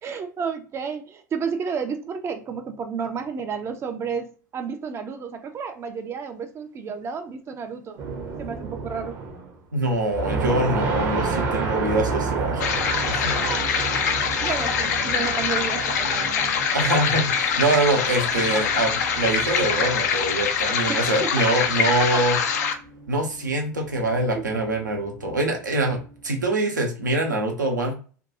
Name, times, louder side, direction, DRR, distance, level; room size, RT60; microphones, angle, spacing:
voice 1, 0.0-8.0 8.4-9.2 13.4-13.7 14.4-16.5 20.9-21.5 22.0-22.2 24.3-24.5, right 6 dB, 25° right, 0.4 m, -31 dB
sound 1, 8.0-9.6 9.9-26.3, right 4 dB, 45° right, 0.8 m, -32 dB
voice 2, 9.7-12.7 13.0-13.3 16.7-22.4 23.1-27.9, right 2 dB, 80° right, 0.7 m, -24 dB
sound 2, 12.6-22.7, left 6 dB, 65° left, 0.4 m, -24 dB
2.6 x 2.2 x 2.6 m
figure-of-eight pair, 75°, 10 cm